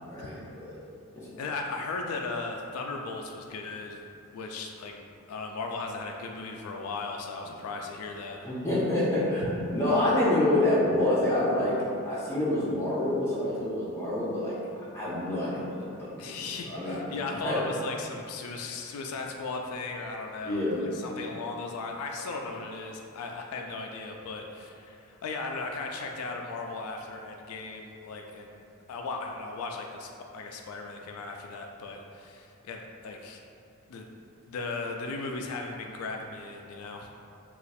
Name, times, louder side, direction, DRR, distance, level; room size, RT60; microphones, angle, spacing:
voice 1, 0.1-0.7 1.1-1.3 8.4-11.8 12.0-14.6 14.9-16.3 16.7-17.6 20.4-20.9, left 1 dB, 10° left, -9 dB, 0.8 m, -27 dB
voice 2, 1.4-4.0 4.3-5.0 5.3-8.5 16.2-33.4 33.9-34.2 34.5-37.1, left 3 dB, 85° left, 2 dB, 0.3 m, -37 dB
3.0 x 2.4 x 4.1 m, 2.6 s
head